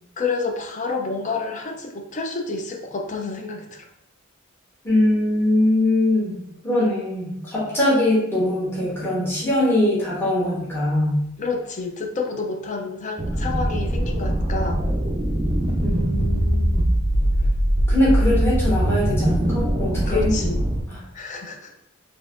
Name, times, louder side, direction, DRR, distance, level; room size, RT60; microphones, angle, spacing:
voice 1, 0.2-3.8 11.4-14.8 20.1-20.6 21.1-21.7, left 4 dB, 35° left, 3 dB, 0.4 m, -29 dB
voice 2, 4.8-6.4 6.6-11.2 15.8-16.8 17.9-20.3 20.9-21.0, left 1 dB, 10° left, -8 dB, 1.2 m, -22 dB
sound 1, 13.2-20.8, right 1 dB, 20° right, 0.4 m, -22 dB
4.1 x 2.8 x 2.5 m, 0.80 s
head